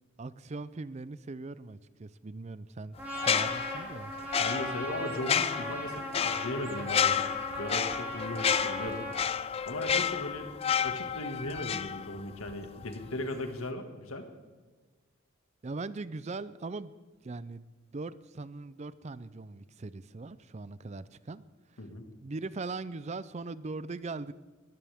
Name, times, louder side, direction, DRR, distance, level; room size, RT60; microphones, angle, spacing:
voice 1, 0.2-3.0 3.2-4.1 15.6-16.9 17.2-17.6 17.9-21.8 22.2-24.3, right 3 dB, 30° right, 16 dB, 0.4 m, -40 dB
Trumpet, 3.0-9.2, equal, 10° right, 4.0 m, -38 dB
sound 1, 3.1-12.5 12.8-13.0, left 7 dB, 30° left, 0.4 m, -31 dB
voice 2, 4.4-9.1 9.7-14.3 21.8-22.1, left 1 dB, 85° left, 5 dB, 2.0 m, -38 dB
21.5 x 14.5 x 3.6 m, 1.3 s
head